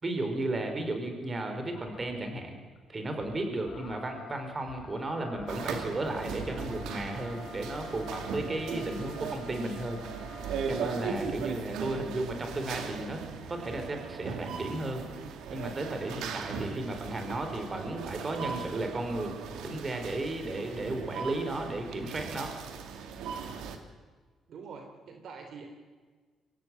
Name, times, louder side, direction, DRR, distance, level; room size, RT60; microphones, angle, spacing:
voice 1, 0.0-2.6 2.9-10.0 10.7-13.2 13.5-15.0 15.5-19.4 19.6-22.5, right 2 dB, 30° right, 5 dB, 5.1 m, -34 dB
sound 1, 1.7-2.3 2.7-2.9 3.2-11.2, left 5 dB, 55° left, 1.8 m, -49 dB
sound 2, 5.5-23.8, right 6 dB, 85° right, 2.5 m, -38 dB
voice 2, 24.5-25.7, right 5 dB, 65° right, 5 dB, 3.1 m, -45 dB
24.5 x 17.0 x 9.4 m, 1.4 s
cardioid pair, 90°, 0 cm